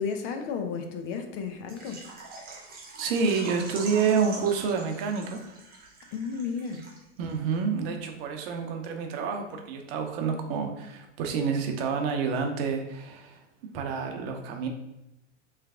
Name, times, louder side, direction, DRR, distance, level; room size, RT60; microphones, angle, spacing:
voice 1, 0.0-2.0 6.1-6.8, left 5 dB, 45° left, 6 dB, 0.7 m, -33 dB
Water / Liquid, 1.7-7.3 7.5-7.6 8.1-8.2, right 3 dB, 25° right, 0.9 m, -44 dB
voice 2, 3.0-5.4 7.2-13.4 13.7-14.7, right 5 dB, 50° right, 4 dB, 0.8 m, -28 dB
3.3 x 3.2 x 3.5 m, 0.90 s
hypercardioid pair, 100°, 37 cm